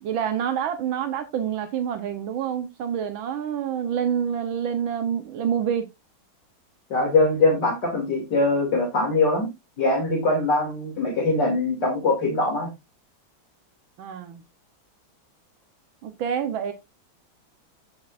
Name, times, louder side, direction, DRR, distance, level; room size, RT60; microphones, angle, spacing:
voice 1, 0.0-5.9 14.0-14.4 16.0-16.7, right 8 dB, 85° right, 1.7 m, -27 dB
voice 2, 6.9-9.5 9.8-12.7, left 2 dB, 60° left, 3.2 m, -22 dB
16.0 x 6.2 x 2.5 m
omnidirectional pair, 2.1 m